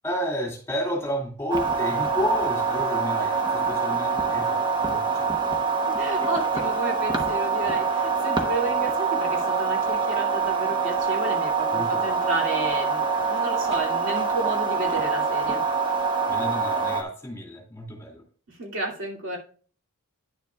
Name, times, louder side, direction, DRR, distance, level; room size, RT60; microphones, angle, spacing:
voice 1, 0.0-5.4 11.7-12.3 16.3-18.2, equal, 10° left, -1 dB, 2.4 m, -31 dB
sound 1, 1.5-17.0, right 5 dB, 20° right, 0.9 m, -25 dB
voice 2, 6.0-15.6 18.5-19.4, right 2 dB, 60° right, -2 dB, 2.5 m, -32 dB
10.5 x 7.3 x 2.3 m, 0.41 s
head